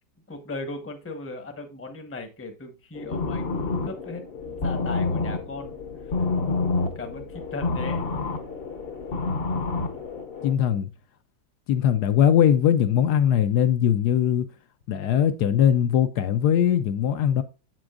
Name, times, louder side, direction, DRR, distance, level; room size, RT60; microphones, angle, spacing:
voice 1, 0.3-3.5 3.8-5.8 6.4-8.1, left 2 dB, 10° left, 0.6 m, -37 dB
sound 1, 3.0-10.5, left 3 dB, 45° left, 0.8 m, -28 dB
voice 2, 10.4-10.9 11.7-14.5 14.9-17.4, left 9 dB, 70° left, 1.0 m, -20 dB
7.8 x 6.1 x 2.4 m
omnidirectional pair, 2.1 m